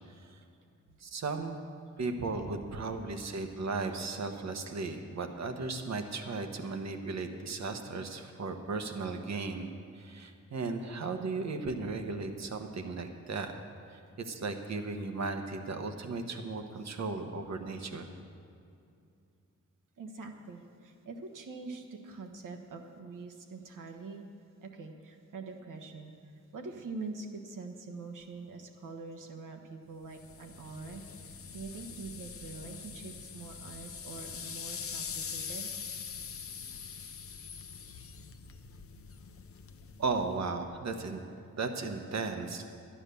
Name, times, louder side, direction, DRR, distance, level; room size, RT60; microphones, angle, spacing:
voice 1, 1.0-1.6 2.0-13.5 13.9-18.1 40.0-41.2 41.5-42.6, right 3 dB, 60° right, 6 dB, 1.2 m, -36 dB
voice 2, 20.0-24.3 24.6-26.1 26.5-35.7, right 3 dB, 75° right, 2 dB, 1.3 m, -44 dB
sound 1, 30.1-40.4, left 6 dB, 45° left, 0.7 m, -43 dB
11.5 x 9.9 x 6.9 m, 2.5 s
wide cardioid pair, 110°, 31 cm